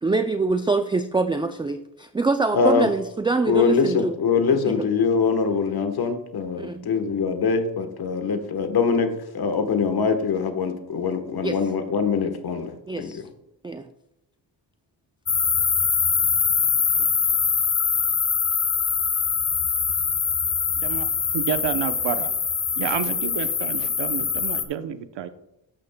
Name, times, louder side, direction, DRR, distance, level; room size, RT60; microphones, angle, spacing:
voice 1, 0.0-4.2 4.7-4.8 6.6-6.9 11.4-11.6 12.9-13.2 13.6-13.8, right 3 dB, 10° right, 8 dB, 0.3 m, -24 dB
voice 2, 2.5-2.9 3.5-13.3, left 5 dB, 55° left, 8 dB, 1.3 m, -23 dB
sound 1, 15.3-24.6, left 6 dB, 35° left, 1.0 m, -23 dB
voice 3, 21.3-22.3 22.8-25.3, right 9 dB, 70° right, 10 dB, 0.9 m, -29 dB
12.5 x 8.4 x 2.2 m, 0.90 s
cardioid pair, 100°, 45 cm